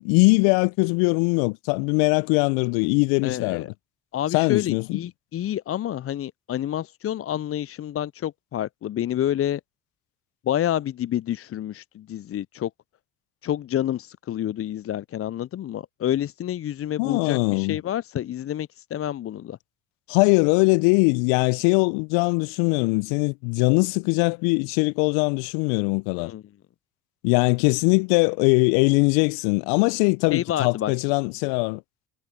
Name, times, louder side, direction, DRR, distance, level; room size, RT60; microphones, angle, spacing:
voice 1, 0.0-3.6 4.3-5.0 17.0-17.8 20.1-26.3 27.2-31.8, left 33 dB, 70° left, 0.8 m, -21 dB
voice 2, 3.2-3.7 4.1-9.6 10.4-12.7 13.4-19.6 26.2-26.4 30.3-30.9, left 11 dB, 30° left, 0.5 m, -28 dB
hypercardioid pair, 50°, 48 cm